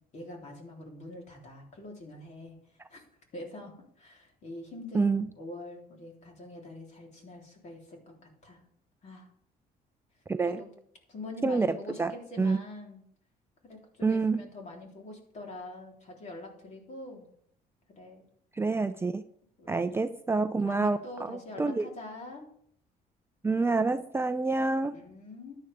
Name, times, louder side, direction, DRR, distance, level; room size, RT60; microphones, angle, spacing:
voice 1, 0.0-2.6 2.9-3.0 3.3-8.6 9.0-9.3 10.4-10.7 11.1-13.0 13.6-17.3 18.0-18.3 19.6-20.1 20.4-22.5 24.9-25.6, left 2 dB, 45° left, 3.8 m, -44 dB
voice 2, 4.9-5.3 10.3-10.6 11.4-12.1 12.4-12.6 14.0-14.4 18.6-19.2 19.7-21.0 21.3-21.9 23.4-25.0, right 3 dB, 15° right, 0.5 m, -27 dB
13.5 x 9.9 x 3.6 m
cardioid pair, 110°, 17 cm